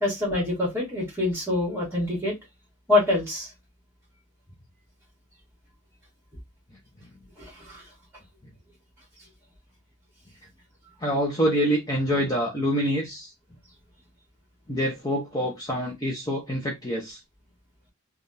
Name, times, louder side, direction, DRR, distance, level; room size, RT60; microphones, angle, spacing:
voice 1, 0.0-2.3 2.9-3.5 7.6-7.8, left 2 dB, 10° right, 1.7 m, -25 dB
voice 2, 11.0-13.3 14.7-17.2, equal, 15° left, 0.7 m, -26 dB
3.4 x 2.3 x 2.6 m
head